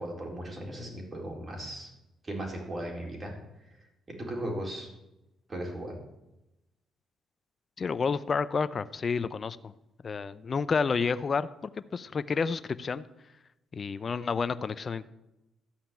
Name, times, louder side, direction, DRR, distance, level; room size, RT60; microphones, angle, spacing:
voice 1, 0.0-1.9 2.2-3.3 3.6-3.8 4.1-4.9 5.5-6.0, right 1 dB, 30° right, 0 dB, 4.4 m, -37 dB
voice 2, 7.8-9.7 10.0-13.0 13.7-15.0, left 5 dB, 40° left, 13 dB, 0.6 m, -30 dB
13.0 x 5.7 x 9.0 m, 0.93 s
cardioid pair, 90°, 0 cm